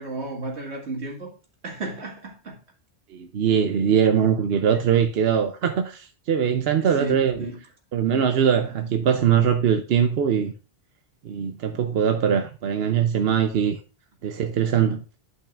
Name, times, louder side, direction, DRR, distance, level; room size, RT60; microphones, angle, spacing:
voice 1, 0.0-1.3 1.6-2.6 7.0-7.6, right 2 dB, 85° right, 2.2 m, -33 dB
voice 2, 3.1-7.5 7.9-10.5 11.2-13.8 14.2-15.0, right 8 dB, 70° right, 0.9 m, -22 dB
12.0 x 5.5 x 2.5 m
omnidirectional pair, 1.1 m